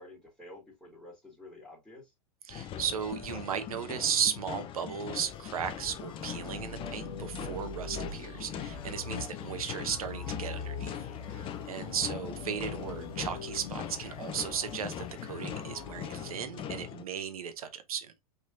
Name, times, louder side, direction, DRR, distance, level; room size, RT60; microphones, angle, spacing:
voice 1, 0.0-2.1, left 1 dB, ahead, 2.8 m, -51 dB
voice 2, 2.4-10.9 11.3-18.1, right 8 dB, 70° right, 1.0 m, -35 dB
sound 1, 2.5-17.0, left 9 dB, 25° left, 0.6 m, -41 dB
sound 2, 5.3-16.3, left 4 dB, 70° left, 1.0 m, -43 dB
5.2 x 3.7 x 2.5 m
hypercardioid pair, 100°, 19 cm